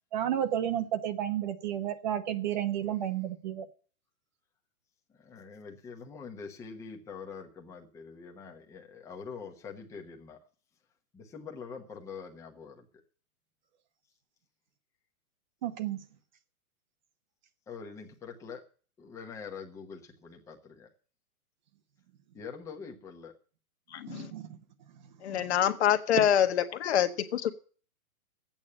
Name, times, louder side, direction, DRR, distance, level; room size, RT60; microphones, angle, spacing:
voice 1, 0.1-3.7 15.6-16.0 24.1-24.5 25.3-25.4, right 10 dB, 30° right, 0.9 m, -32 dB
voice 2, 5.1-10.4 11.1-12.9 17.7-18.6 19.0-20.9 22.3-23.3, left 5 dB, 5° left, 1.0 m, -44 dB
voice 3, 23.9-24.3 25.2-27.5, left 10 dB, 45° left, 1.4 m, -26 dB
12.5 x 8.9 x 8.5 m
hypercardioid pair, 165°, 44 cm